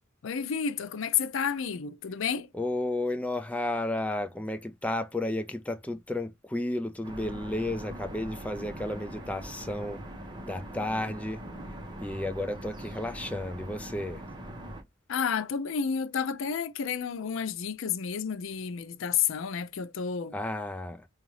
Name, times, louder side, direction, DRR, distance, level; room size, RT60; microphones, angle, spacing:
voice 1, 0.2-2.5 15.1-20.4, left 7 dB, 80° left, 0.5 m, -30 dB
voice 2, 2.5-10.0 10.5-11.4 12.0-14.2 20.3-21.1, left 1 dB, 5° left, 0.3 m, -32 dB
sound 1, 7.0-14.8, right 1 dB, 25° right, 1.0 m, -42 dB
3.9 x 2.4 x 3.0 m
head